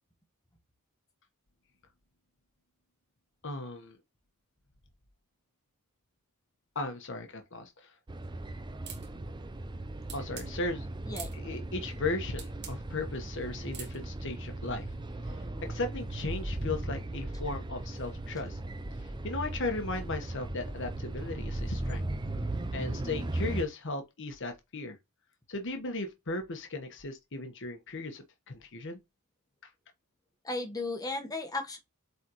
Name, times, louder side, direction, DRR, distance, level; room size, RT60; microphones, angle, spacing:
voice 1, 3.4-4.0 6.7-7.9 10.1-10.9 11.3-14.9 15.4-18.6 19.0-22.0 22.7-25.0 25.5-29.0, left 2 dB, 55° left, 1.2 m, -36 dB
sound 1, 8.1-23.6, right 1 dB, 20° right, 0.5 m, -37 dB
sound 2, 8.9-9.1 10.1-10.5 11.1-11.4 12.4-12.8 13.7-14.0, right 8 dB, 50° right, 2.1 m, -43 dB
voice 2, 30.4-31.8, left 2 dB, 15° left, 1.2 m, -35 dB
8.0 x 4.1 x 3.0 m
head